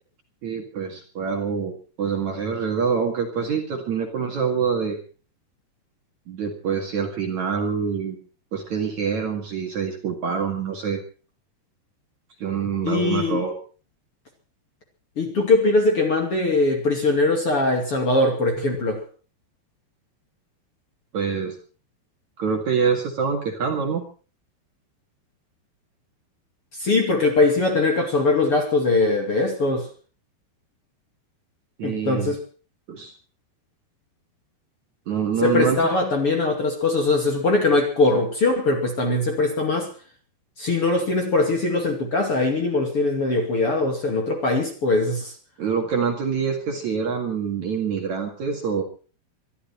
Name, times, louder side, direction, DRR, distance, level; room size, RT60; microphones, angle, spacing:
voice 1, 0.4-5.0 6.3-8.2 8.5-11.0 12.4-13.6 21.1-21.6 22.4-24.0 31.8-32.4 32.9-33.1 35.1-35.8 45.6-48.8, right 6 dB, 50° right, 2.8 m, -25 dB
voice 2, 12.8-13.4 15.2-19.0 26.7-29.9 31.8-32.4 35.4-39.9 40.6-45.3, left 2 dB, 40° left, 2.7 m, -21 dB
23.0 x 13.0 x 4.4 m
omnidirectional pair, 5.1 m